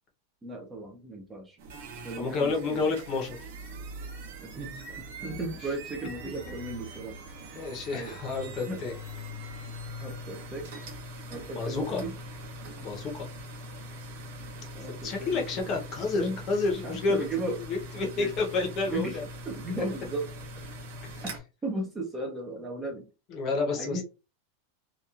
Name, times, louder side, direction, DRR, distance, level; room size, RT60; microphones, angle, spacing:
voice 1, 0.4-1.6 2.0-2.9 4.4-7.6 7.9-8.2 8.7-8.8 10.0-10.7 11.3-12.1 14.7-15.7 16.1-16.4 16.8-17.6 18.2-18.3 18.9-19.2 19.5-20.3 21.6-23.1 23.8-24.0, right 2 dB, 10° right, 1 dB, 0.4 m, -36 dB
sound 1, 1.6-21.4, equal, 55° right, 0.8 m, -42 dB
voice 2, 2.2-3.4 7.6-8.9 11.6-12.1 12.8-13.3 15.0-19.2 21.1-21.2 23.3-24.0, left 4 dB, 25° left, 2 dB, 0.7 m, -30 dB
2.9 x 2.2 x 2.3 m, 0.29 s
supercardioid pair, 175°, 0 cm